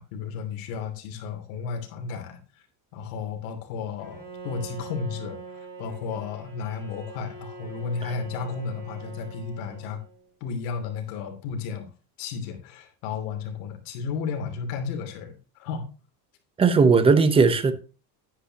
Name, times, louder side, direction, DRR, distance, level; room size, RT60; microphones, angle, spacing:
voice 1, 0.0-2.4 2.9-10.0 10.4-11.9 12.2-15.9, left 5 dB, 85° left, 3.1 m, -33 dB
Bowed string instrument, 4.0-10.3, right 4 dB, 30° right, 6.5 m, -43 dB
voice 2, 16.6-17.7, right 4 dB, 15° right, 0.9 m, -18 dB
11.0 x 9.8 x 2.9 m
cardioid pair, 180°, 44 cm